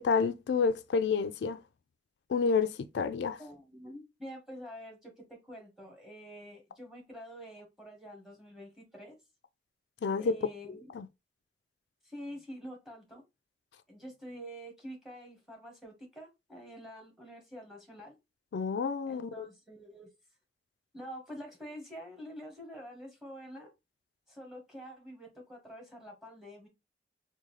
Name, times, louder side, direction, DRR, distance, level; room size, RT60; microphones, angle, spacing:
voice 1, 0.0-1.6 2.3-3.4 10.0-10.3 10.9-11.1 18.5-19.4, left 5 dB, 75° left, 0.3 m, -29 dB
voice 2, 3.4-9.2 10.2-10.9 12.0-13.2 13.9-18.2 19.1-20.1 20.9-23.7 24.3-26.7, equal, ahead, 1.2 m, -47 dB
3.7 x 2.3 x 3.2 m
head